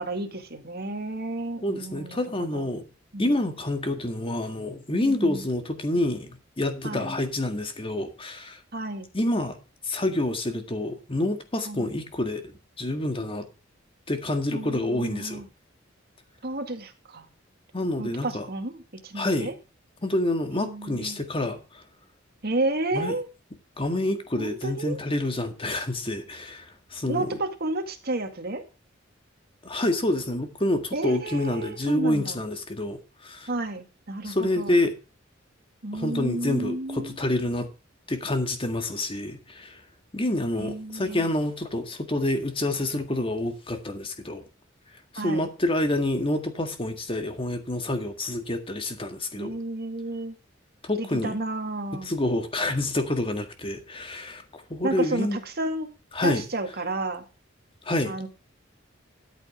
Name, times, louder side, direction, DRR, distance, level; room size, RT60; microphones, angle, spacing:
voice 1, 0.0-2.7 3.1-3.4 5.0-5.4 6.8-7.1 8.7-9.1 11.7-11.9 14.5-15.5 16.4-17.3 18.0-19.5 20.5-21.2 22.4-23.3 24.4-25.0 27.1-28.6 30.9-32.4 33.5-34.8 35.8-37.2 40.6-41.3 45.2-45.5 49.3-50.4 51.0-52.1 54.8-55.9 56.2-57.2 58.0-58.3, right 2 dB, 50° right, 2.0 m, -32 dB
voice 2, 1.6-2.9 3.2-8.6 9.1-9.6 9.9-13.5 14.1-15.4 17.7-18.5 19.2-19.5 20.0-21.8 22.9-23.1 23.8-27.4 29.6-33.5 34.2-34.9 35.9-37.7 38.1-39.8 40.1-44.4 45.1-49.5 50.8-51.4 51.9-55.4 56.1-56.4 57.9-58.2, left 1 dB, 30° left, 1.8 m, -28 dB
13.5 x 8.2 x 3.5 m
head